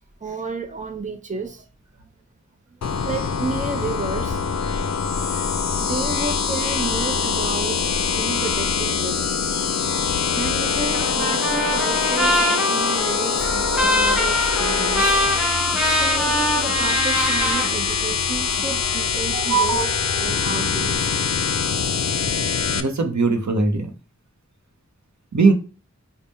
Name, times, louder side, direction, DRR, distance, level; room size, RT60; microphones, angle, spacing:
voice 1, 0.2-1.7 2.0-2.1 2.7-4.4 5.8-9.8 10.3-15.2 15.9-21.1, right 4 dB, 25° right, 0.6 m, -31 dB
sound 1, 2.8-22.8, left 6 dB, 65° left, 0.4 m, -23 dB
Trumpet, 10.9-17.7, equal, 5° right, 1.0 m, -23 dB
sound 2, 13.3-20.9, left 2 dB, 40° left, 1.0 m, -34 dB
voice 2, 19.3-19.8 22.7-23.9 25.3-25.5, right 4 dB, 65° right, 0.7 m, -19 dB
3.5 x 2.1 x 4.0 m
wide cardioid pair, 50°, 30 cm